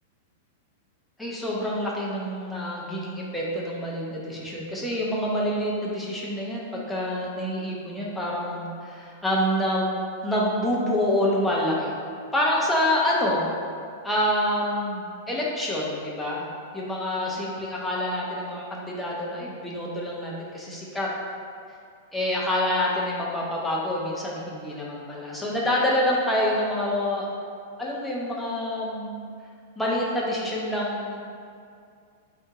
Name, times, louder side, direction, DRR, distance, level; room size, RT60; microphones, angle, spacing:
voice 1, 1.2-9.9 10.2-11.9 12.3-13.5 14.0-21.1 22.1-27.3 27.8-29.1 29.8-31.2, left 1 dB, 5° left, -5 dB, 0.5 m, -27 dB
3.4 x 2.9 x 4.6 m, 2.3 s
supercardioid pair, 175°, 0 cm